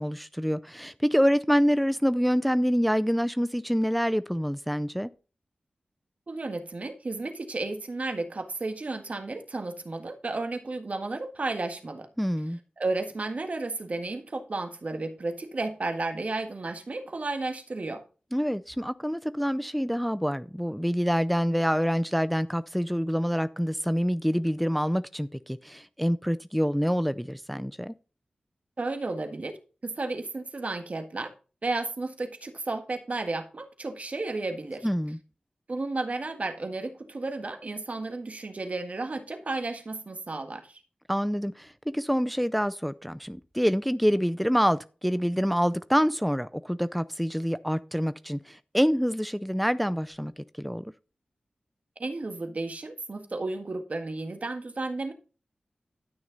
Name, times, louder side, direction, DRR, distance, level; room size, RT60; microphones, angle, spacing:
voice 1, 0.0-5.1 12.2-12.6 18.3-27.9 34.8-35.2 41.1-50.9, equal, ahead, 0.5 m, -26 dB
voice 2, 6.3-12.1 12.8-18.0 28.8-29.6 29.8-31.3 31.6-34.9 35.7-40.8 52.0-55.1, right 3 dB, 55° right, 1.7 m, -33 dB
12.0 x 6.4 x 4.0 m
cardioid pair, 50°, 3 cm